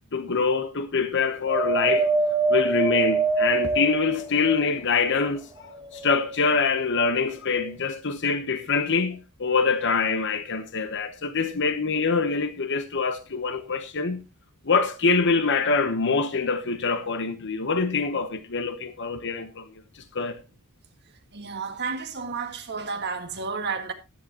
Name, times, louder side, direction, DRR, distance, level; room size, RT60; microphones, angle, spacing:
voice 1, 0.1-2.1 2.5-5.4 5.9-14.3 14.7-19.7 20.1-20.4, left 4 dB, 55° left, 1.0 m, -25 dB
Wind, 1.5-5.0 5.6-6.6 7.4-7.5, right 3 dB, 15° right, 2.1 m, -25 dB
voice 2, 21.3-23.9, right 5 dB, 50° right, 1.8 m, -31 dB
14.5 x 11.0 x 3.0 m
head